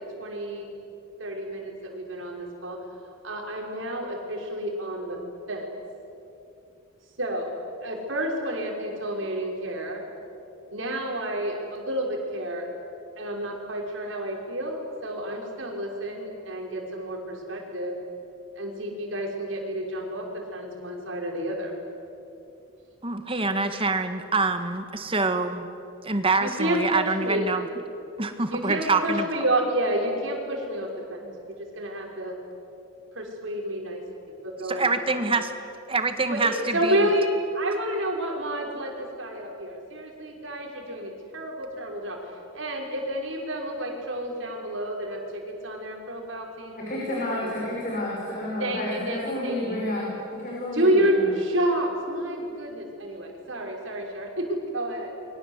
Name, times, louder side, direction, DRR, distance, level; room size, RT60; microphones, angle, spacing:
voice 1, 0.2-0.7 1.2-2.8 3.2-5.2 5.5-5.6 7.2-10.0 10.7-12.7 13.2-17.9 18.6-20.2 20.5-21.7 26.4-27.4 28.5-30.9 31.5-32.3 33.1-34.0 34.6-35.0 36.3-37.2 37.5-42.2 42.5-47.7 48.6-49.8 50.7-55.1, right 1 dB, 70° right, 0 dB, 5.7 m, -29 dB
voice 2, 23.0-25.7 26.0-27.7 28.2-29.3 34.7-35.4 35.9-37.0, right 3 dB, 25° right, 8 dB, 1.7 m, -25 dB
voice 3, 46.8-51.3, left 1 dB, 45° left, -4 dB, 5.9 m, -30 dB
28.5 x 24.0 x 8.2 m, 2.8 s
head